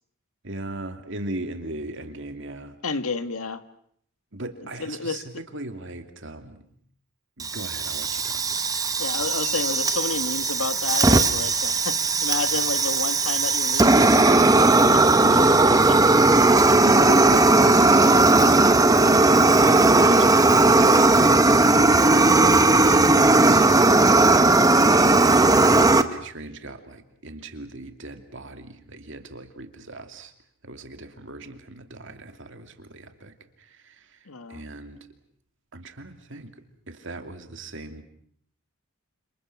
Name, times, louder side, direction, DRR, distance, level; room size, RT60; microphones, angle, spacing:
voice 1, 0.4-2.8 4.3-5.2 5.5-6.6 7.4-8.7 16.7-18.0 19.5-21.4 21.9-24.7 25.5-30.3 30.6-34.2 34.5-35.1 35.7-36.5 36.9-38.0, right 2 dB, 60° right, 7 dB, 2.6 m, -38 dB
voice 2, 2.8-3.6 4.8-5.2 9.0-16.0 21.2-21.3 34.3-34.6, left 4 dB, 80° left, 10 dB, 1.7 m, -31 dB
Fire, 7.4-26.0, right 2 dB, 15° right, 1.0 m, -17 dB
29.5 x 27.5 x 6.0 m, 0.64 s
head